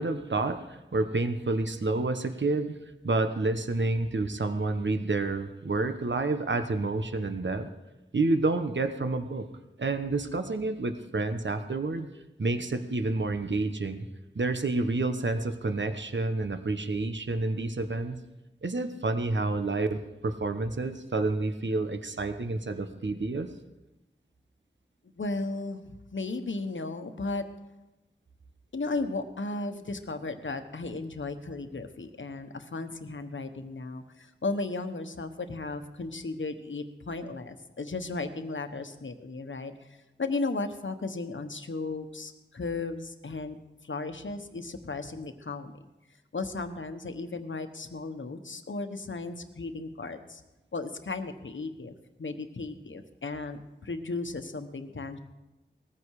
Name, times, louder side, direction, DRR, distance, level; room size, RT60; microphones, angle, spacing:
voice 1, 0.0-2.8 3.0-7.7 8.1-9.5 9.8-12.1 12.4-14.1 14.3-18.2 18.6-23.5, right 3 dB, 75° right, 8 dB, 1.2 m, -29 dB
voice 2, 25.2-25.8 26.1-27.4 28.7-43.6 43.8-45.8 46.3-50.4 50.7-51.9 52.2-55.2, left 3 dB, 90° left, 8 dB, 1.2 m, -35 dB
19.5 x 15.0 x 4.9 m, 0.99 s
wide cardioid pair, 55°, 19 cm